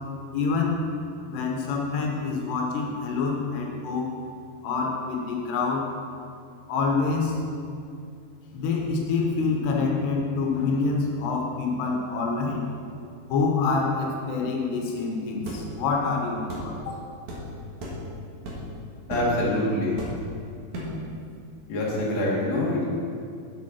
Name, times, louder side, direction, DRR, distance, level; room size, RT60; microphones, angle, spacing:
voice 1, 0.3-0.8 1.3-4.1 4.6-5.9 6.7-7.4 8.5-12.7 13.3-17.0, left 4 dB, 85° left, 0 dB, 3.3 m, -26 dB
sound 1, 15.5-15.7 16.5-16.7 17.3-17.4 17.8-18.0 18.5-18.7 19.1-19.3 20.0-20.3 20.7-21.0, equal, 55° right, 2.5 m, -34 dB
voice 2, 19.1-20.0 21.7-22.9, left 1 dB, 45° left, -5 dB, 2.9 m, -25 dB
8.3 x 7.5 x 6.1 m, 2.4 s
omnidirectional pair, 4.7 m